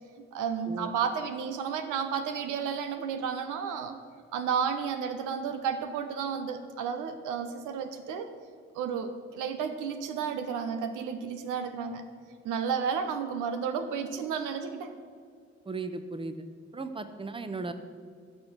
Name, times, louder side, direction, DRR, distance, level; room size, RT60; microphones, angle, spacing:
voice 1, 0.3-4.0 4.3-8.3 8.7-12.0 12.4-14.9, right 6 dB, 70° right, 7 dB, 0.8 m, -32 dB
voice 2, 15.7-16.4 16.7-17.7, right 3 dB, 15° right, 9 dB, 0.9 m, -36 dB
14.5 x 5.2 x 6.1 m, 2.1 s
hypercardioid pair, 40°, 32 cm